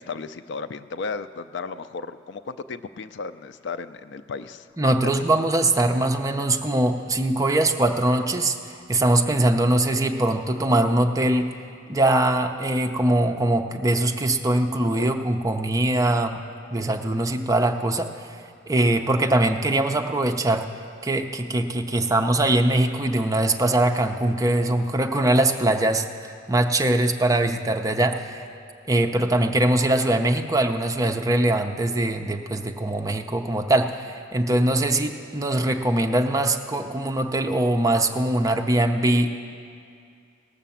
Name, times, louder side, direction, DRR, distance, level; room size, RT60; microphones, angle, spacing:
voice 1, 0.0-4.7 5.0-5.2 15.0-15.1, left 4 dB, 60° left, 12 dB, 0.4 m, -34 dB
voice 2, 4.8-11.5 11.9-16.4 16.7-18.4 18.7-20.7 21.0-28.5 28.9-39.3, right 1 dB, 15° right, 5 dB, 0.5 m, -22 dB
18.0 x 6.7 x 7.1 m, 2.4 s
head